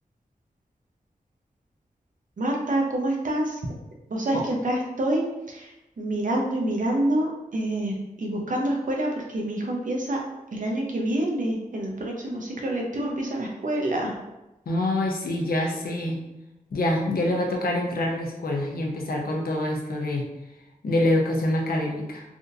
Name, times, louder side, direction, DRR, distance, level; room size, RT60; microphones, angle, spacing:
voice 1, 2.4-3.6 4.1-10.2 10.5-14.2, right 1 dB, 60° right, 0 dB, 0.7 m, -27 dB
voice 2, 14.7-16.2 16.7-20.3 20.8-22.2, left 1 dB, 80° left, 0 dB, 0.6 m, -25 dB
3.5 x 2.7 x 2.5 m, 0.94 s
wide cardioid pair, 115°, 15 cm